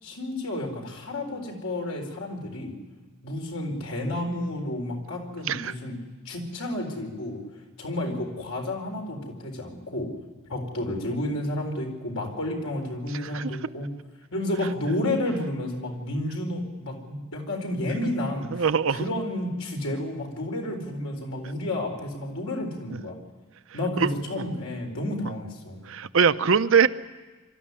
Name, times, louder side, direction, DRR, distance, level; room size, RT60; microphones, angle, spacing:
voice 1, 0.0-2.8 3.2-7.4 7.8-10.1 10.5-13.9 14.3-18.6 18.9-23.2 23.7-25.8, left 1 dB, 75° left, 2 dB, 4.4 m, -31 dB
voice 2, 13.2-13.6 18.5-19.0 24.0-24.4 25.9-26.9, right 6 dB, 65° right, 12 dB, 0.7 m, -22 dB
24.0 x 13.0 x 9.8 m, 1.3 s
head